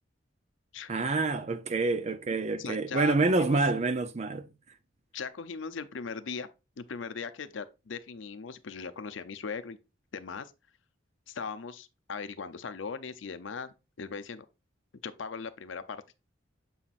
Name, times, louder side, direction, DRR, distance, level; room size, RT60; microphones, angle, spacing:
voice 1, 0.9-4.5, right 3 dB, 35° right, 0.5 m, -27 dB
voice 2, 2.6-3.6 5.1-6.5 6.8-9.8 10.1-10.5 11.3-14.5 15.0-16.0, left 5 dB, 70° left, 0.6 m, -39 dB
6.9 x 5.7 x 2.5 m
head